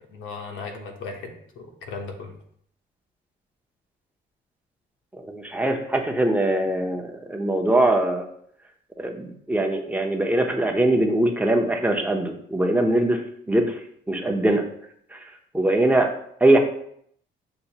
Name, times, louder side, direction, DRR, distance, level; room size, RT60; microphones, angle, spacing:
voice 1, 0.1-2.3, left 4 dB, 80° left, 2 dB, 1.0 m, -36 dB
voice 2, 5.2-8.2 9.0-13.2 13.5-13.8 14.1-14.6 15.1-15.2 15.5-16.1 16.4-16.6, right 1 dB, 10° right, 2 dB, 0.7 m, -22 dB
6.8 x 2.6 x 2.9 m, 0.67 s
cardioid pair, 90°, 20 cm